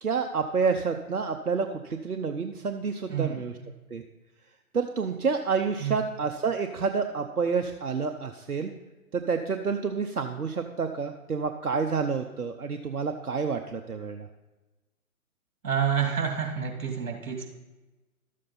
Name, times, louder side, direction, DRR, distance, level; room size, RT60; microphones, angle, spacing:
voice 1, 0.0-3.5 3.9-4.0 4.7-8.7 9.1-14.3, right 5 dB, 90° right, 5 dB, 0.8 m, -29 dB
voice 2, 3.1-3.6 5.8-6.0 15.6-17.5, right 7 dB, 65° right, 2 dB, 2.4 m, -29 dB
12.5 x 7.5 x 4.1 m, 1.1 s
figure-of-eight pair, 135°, 44 cm